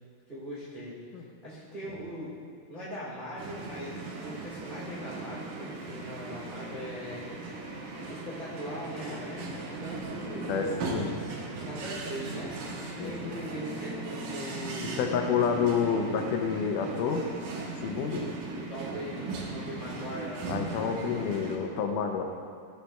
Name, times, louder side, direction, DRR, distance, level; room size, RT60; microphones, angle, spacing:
voice 1, 0.3-1.0 1.4-2.3 2.7-7.3 8.1-9.5 9.8-12.5 13.0-15.1 18.1-18.3 18.7-21.2, equal, 40° right, -9 dB, 0.6 m, -40 dB
sound 1, 3.4-21.6, right 2 dB, 80° right, 2.5 m, -38 dB
voice 2, 10.5-11.1 13.0-13.3 14.8-17.2 17.8-18.2 20.5-22.2, left 6 dB, 80° left, 4 dB, 2.1 m, -29 dB
14.0 x 6.3 x 2.2 m, 2.2 s
omnidirectional pair, 3.8 m